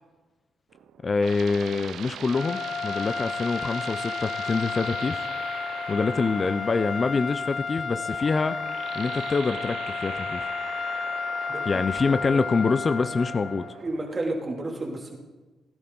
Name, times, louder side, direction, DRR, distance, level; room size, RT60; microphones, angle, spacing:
sound 1, 0.7-14.3, right 9 dB, 75° right, 0.6 m, -41 dB
voice 1, 1.0-5.3 5.9-8.6 8.9-10.5 11.7-13.7, left 4 dB, 35° left, 12 dB, 0.5 m, -25 dB
sound 2, 2.3-13.8, left 5 dB, 55° left, 0.9 m, -32 dB
voice 2, 13.8-15.2, right 2 dB, 30° right, 0 dB, 2.9 m, -31 dB
16.5 x 11.0 x 4.0 m, 1.2 s
cardioid pair, 90°, 0 cm